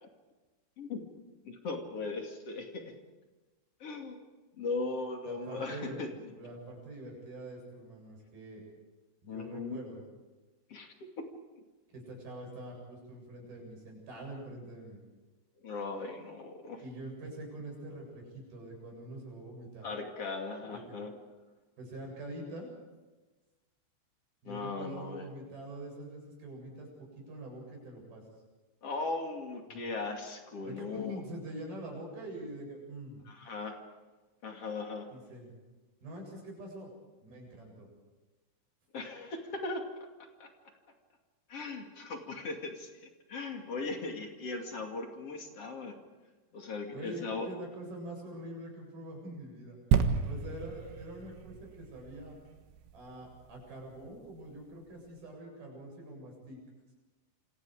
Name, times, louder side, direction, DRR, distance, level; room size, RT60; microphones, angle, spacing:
voice 1, 1.4-2.9 3.8-4.2 4.5-6.1 9.3-9.8 10.7-11.3 11.5-11.6 15.6-16.8 19.8-21.2 24.4-25.3 28.8-31.2 33.3-33.8 34.4-35.1 38.9-39.9 40.4-40.5 41.5-42.9 43.3-45.9 46.5-47.5, left 3 dB, 40° left, 3 dB, 2.7 m, -38 dB
voice 2, 5.3-6.1 6.3-8.6 9.2-10.1 11.9-15.0 16.8-19.9 20.7-21.0 21.8-22.7 24.4-28.2 29.7-29.8 30.6-33.2 35.1-35.5 36.0-36.9 37.2-37.9 46.9-49.8 50.2-52.4 52.9-56.6, right 1 dB, 50° right, 0 dB, 9.7 m, -45 dB
sound 1, 49.9-53.5 54.1-54.2, right 7 dB, 75° right, 3.7 m, -32 dB
28.0 x 26.5 x 5.1 m, 1.2 s
omnidirectional pair, 5.6 m